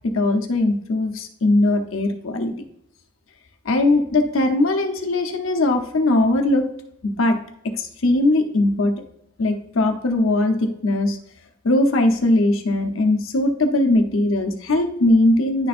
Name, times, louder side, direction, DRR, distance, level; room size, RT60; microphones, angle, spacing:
voice 1, 0.0-2.5 3.6-6.7 7.0-7.4 7.6-8.9 9.4-11.2 11.6-15.7, left 2 dB, 75° left, 5 dB, 0.9 m, -20 dB
10.5 x 4.2 x 2.5 m, 0.74 s
head